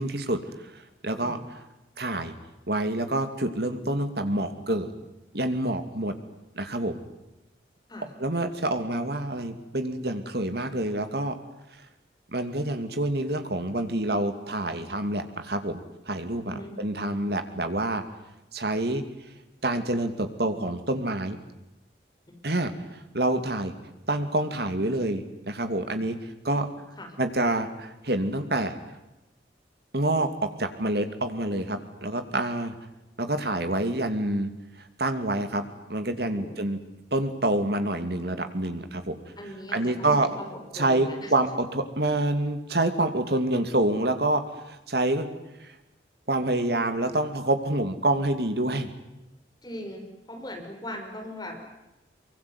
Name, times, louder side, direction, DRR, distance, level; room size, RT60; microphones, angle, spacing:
voice 1, 0.0-1.6 2.0-2.3 2.7-4.9 5.3-6.1 6.5-7.0 8.2-11.4 12.3-15.8 16.1-18.0 18.5-19.0 19.6-21.4 22.4-22.7 23.1-23.7 24.1-26.7 27.2-28.8 29.9-32.7 33.2-34.5 35.0-35.6 35.9-36.8 37.1-39.2 39.7-40.3 40.7-45.3 45.6-45.7 46.3-48.9, right 1 dB, 60° right, 8 dB, 2.7 m, -27 dB
voice 2, 1.2-1.5 7.9-8.1 16.4-16.7 27.0-27.1 36.3-36.6 39.4-41.3 49.6-51.6, left 1 dB, 20° left, 2 dB, 5.9 m, -39 dB
24.0 x 23.5 x 9.7 m, 0.94 s
head